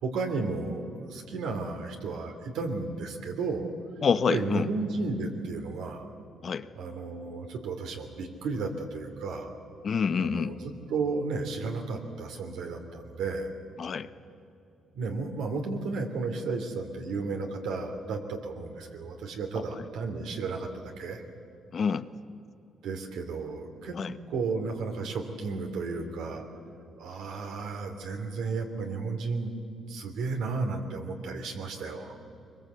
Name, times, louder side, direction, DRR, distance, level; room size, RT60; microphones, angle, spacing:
voice 1, 0.0-3.7 4.3-6.1 6.8-9.5 10.2-13.5 14.9-21.2 22.8-24.0 24.3-26.4 27.0-29.5 29.9-32.2, right 4 dB, 85° right, 3 dB, 2.9 m, -33 dB
voice 2, 4.0-4.7 6.4-6.7 9.8-10.5 13.8-14.1 21.7-22.1 23.9-24.1, left 6 dB, 50° left, 11 dB, 0.8 m, -27 dB
23.0 x 21.5 x 8.2 m, 2.7 s
cardioid pair, 90°, 0 cm